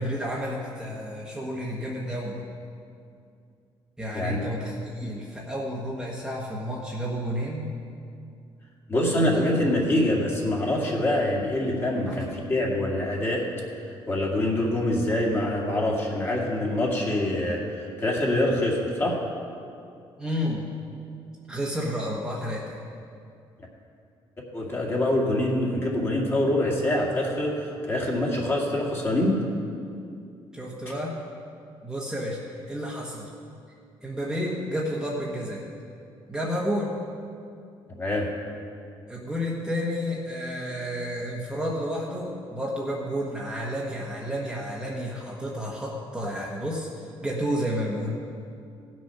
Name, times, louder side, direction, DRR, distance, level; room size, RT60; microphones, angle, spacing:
voice 1, 0.0-2.4 4.0-7.7 9.2-9.4 12.1-12.2 20.2-20.6 21.5-22.8 30.5-31.2 31.8-32.4 32.7-33.3 34.0-35.6 36.3-36.9 39.1-46.9 47.2-48.1, equal, 5° right, -4 dB, 1.2 m, -31 dB
voice 2, 4.1-4.4 8.9-13.5 14.1-19.2 24.5-29.4 38.0-38.3, left 1 dB, 25° left, -2 dB, 2.1 m, -25 dB
16.5 x 6.3 x 5.7 m, 2.5 s
cardioid pair, 140°, 9 cm